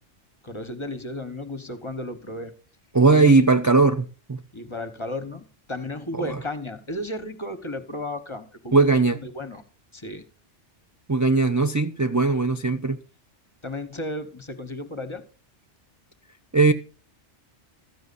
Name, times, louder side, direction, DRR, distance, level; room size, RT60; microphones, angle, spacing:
voice 1, 0.5-2.5 3.1-3.5 4.5-8.8 9.4-9.6 10.0-10.2 13.6-15.2, left 1 dB, 25° left, 1.1 m, -33 dB
voice 2, 2.9-4.4 6.1-6.4 8.7-9.2 11.1-13.0 16.5-16.7, right 3 dB, 20° right, 0.4 m, -19 dB
15.0 x 13.0 x 2.6 m
omnidirectional pair, 1.2 m